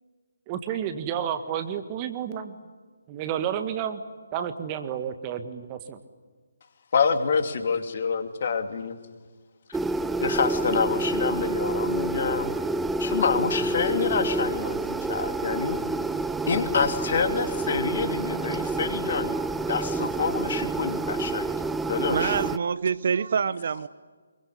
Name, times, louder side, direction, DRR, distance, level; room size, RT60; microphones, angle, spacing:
voice 1, 0.5-2.6 3.1-4.0 4.3-6.0, right 9 dB, 25° right, 1.8 m, -31 dB
voice 2, 6.9-9.0 10.2-12.5 13.0-15.8 16.5-19.4 19.7-21.5 21.9-22.4, left 5 dB, 50° left, 2.7 m, -27 dB
sound 1, 9.7-22.6, right 3 dB, 5° right, 0.7 m, -28 dB
voice 3, 22.0-23.9, right 6 dB, 50° right, 0.8 m, -26 dB
24.0 x 23.0 x 9.9 m
figure-of-eight pair, 145°, 0 cm